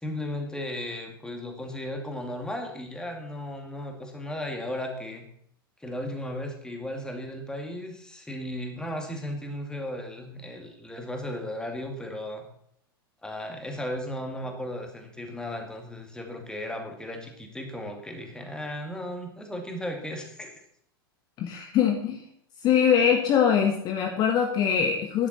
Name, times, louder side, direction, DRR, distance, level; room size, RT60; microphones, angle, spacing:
voice 1, 0.0-5.3 5.8-12.5 13.2-20.5, left 1 dB, 5° left, 3 dB, 2.3 m, -35 dB
voice 2, 21.4-22.2 22.6-25.3, left 8 dB, 35° left, 4 dB, 1.4 m, -23 dB
12.0 x 10.5 x 4.3 m, 0.68 s
figure-of-eight pair, 90°, 12 cm